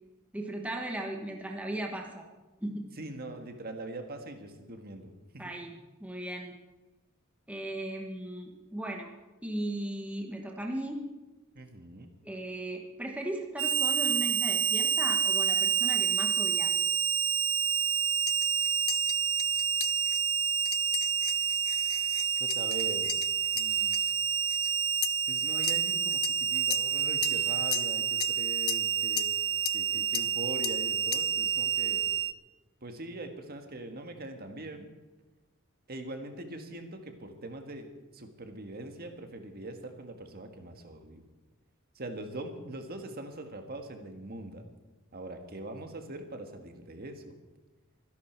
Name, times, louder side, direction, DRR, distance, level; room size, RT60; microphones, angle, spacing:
voice 1, 0.3-2.3 2.6-2.8 5.4-6.6 7.5-9.1 9.4-11.0 12.2-16.7, right 1 dB, 5° right, 2 dB, 1.2 m, -37 dB
voice 2, 3.0-5.5 11.5-12.1 22.4-23.2 23.5-23.9 25.3-29.3 29.7-32.1 32.8-34.9 35.9-37.9 38.1-41.2 41.9-44.7 45.1-47.4, right 2 dB, 45° right, 6 dB, 1.6 m, -42 dB
Harmonica, 13.6-32.3, right 7 dB, 25° right, 0.4 m, -28 dB
sound 1, 18.3-24.7 25.0-26.4 26.7-27.0 27.2-27.4 27.7-28.3 28.7-28.9 29.2-29.4 29.6-29.8 30.1-30.3 30.6-30.8 31.1-31.3, left 15 dB, 65° left, 0.6 m, -37 dB
24.5 x 11.0 x 4.6 m, 1.1 s
head